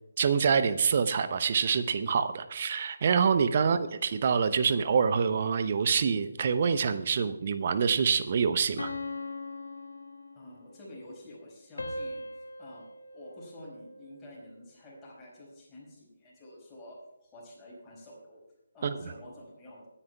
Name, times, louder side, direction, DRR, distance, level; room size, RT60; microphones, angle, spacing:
voice 1, 0.2-8.9 18.8-19.0, right 6 dB, 40° right, 11 dB, 0.7 m, -26 dB
sound 1, 8.8-10.7 11.8-14.2, left 2 dB, 65° left, 1.0 m, -40 dB
voice 2, 10.3-12.3 12.6-18.4 18.7-19.9, left 1 dB, 10° left, -7 dB, 4.8 m, -49 dB
23.0 x 9.9 x 2.3 m, 0.94 s
figure-of-eight pair, 145°, 0 cm